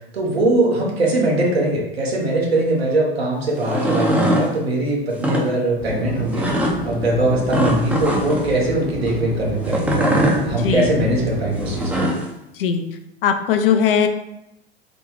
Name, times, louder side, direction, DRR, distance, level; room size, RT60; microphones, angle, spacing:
voice 1, 0.1-6.5 6.8-12.1, right 2 dB, 75° right, -2 dB, 1.1 m, -21 dB
sound 1, 3.5-4.5 5.1-5.4 6.3-6.7 7.5-8.5 9.6-10.4 11.6-12.2, equal, 5° right, 0.5 m, -21 dB
sound 2, 5.8-12.1, equal, 30° left, 0.8 m, -30 dB
voice 2, 10.4-11.1 12.5-12.8 13.2-14.1, left 7 dB, 65° left, 7 dB, 0.5 m, -19 dB
4.0 x 2.2 x 3.1 m, 0.86 s
figure-of-eight pair, 85°, 31 cm